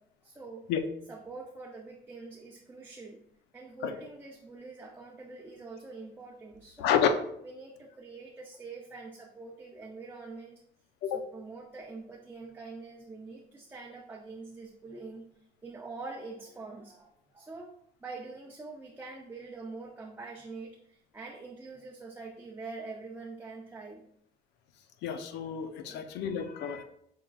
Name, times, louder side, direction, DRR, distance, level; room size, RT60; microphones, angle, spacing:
voice 1, 0.2-0.7 1.1-3.2 3.5-7.0 7.4-10.6 11.1-15.3 15.6-17.7 18.0-24.1 25.8-26.0, right 3 dB, 10° right, -2 dB, 0.6 m, -45 dB
voice 2, 6.8-7.1 11.0-11.2 25.0-26.8, left 8 dB, 85° left, 8 dB, 0.6 m, -29 dB
5.7 x 3.6 x 2.4 m, 0.71 s
cardioid pair, 110°, 17 cm